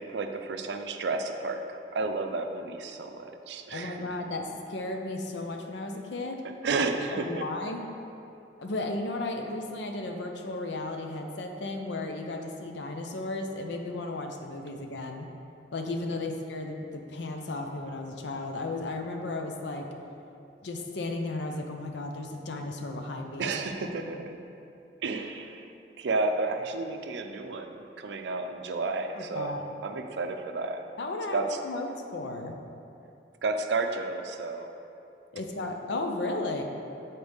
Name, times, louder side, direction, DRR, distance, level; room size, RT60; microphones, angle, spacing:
voice 1, 0.0-4.2 6.6-7.5 23.4-24.4 25.0-25.7 26.0-29.5 29.8-30.8 31.3-31.6 33.4-34.7, right 3 dB, 80° right, 6 dB, 0.4 m, -32 dB
voice 2, 3.7-6.4 7.1-7.8 8.6-15.3 15.7-19.9 20.6-23.5 29.1-29.6 31.0-32.6 35.3-36.6, left 2 dB, 85° left, 3 dB, 0.6 m, -34 dB
7.8 x 4.2 x 3.5 m, 2.8 s
head